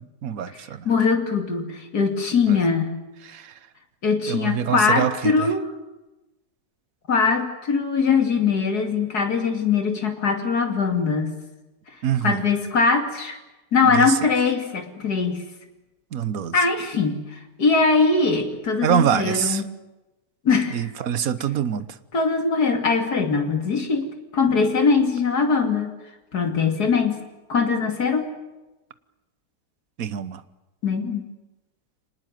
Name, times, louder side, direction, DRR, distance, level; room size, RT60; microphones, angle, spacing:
voice 1, 0.0-0.9 2.5-2.6 3.3-3.5 4.3-5.5 12.0-12.4 13.8-14.2 16.1-16.6 18.8-19.6 20.7-21.9 30.0-30.4, right 9 dB, 60° right, 14 dB, 1.5 m, -25 dB
voice 2, 0.8-3.0 4.0-5.7 7.1-11.3 12.2-13.4 13.7-15.4 16.5-19.6 20.4-20.9 22.1-25.9 26.3-27.2 27.5-28.3 30.8-31.2, left 4 dB, 75° left, 5 dB, 3.2 m, -21 dB
25.5 x 19.5 x 9.3 m, 1.0 s
omnidirectional pair, 1.7 m